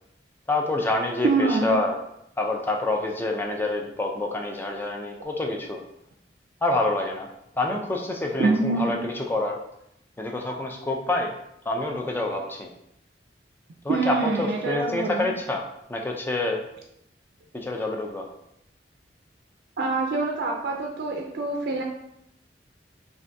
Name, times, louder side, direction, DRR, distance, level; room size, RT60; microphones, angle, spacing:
voice 1, 0.5-2.0 2.4-5.8 6.6-7.3 7.6-9.6 10.2-11.4 11.7-12.7 13.8-15.6 15.9-16.6 17.5-18.3, left 2 dB, 10° left, 1 dB, 0.3 m, -27 dB
voice 2, 1.2-1.7 8.4-9.0 13.9-15.3 19.8-21.8, right 3 dB, 60° right, 0 dB, 0.4 m, -25 dB
3.3 x 2.5 x 2.6 m, 0.79 s
head